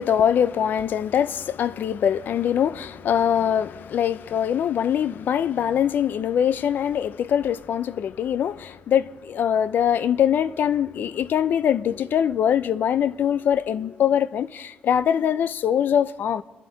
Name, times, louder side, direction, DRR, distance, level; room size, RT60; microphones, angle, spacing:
voice 1, 0.0-16.4, left 9 dB, 60° left, 0.4 m, -23 dB
26.0 x 11.0 x 4.0 m
wide cardioid pair, 150°, 4 cm